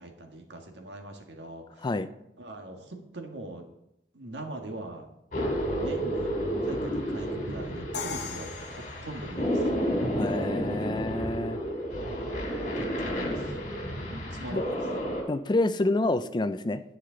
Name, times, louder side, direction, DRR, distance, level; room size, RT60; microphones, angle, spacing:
voice 1, 0.0-1.9 2.4-3.6 4.1-5.1 5.8-6.3 6.6-9.6 13.0-13.4 14.1-14.8, right 1 dB, 90° right, 3 dB, 1.6 m, -41 dB
voice 2, 1.8-2.1 10.1-11.6 14.5-14.6 15.3-16.8, left 2 dB, 25° left, 12 dB, 0.4 m, -28 dB
sound 1, 5.3-15.2, equal, 50° left, 3.1 m, -31 dB
Crash cymbal, 7.9-9.9, left 5 dB, 65° left, 1.1 m, -39 dB
9.7 x 9.5 x 3.9 m, 0.84 s
head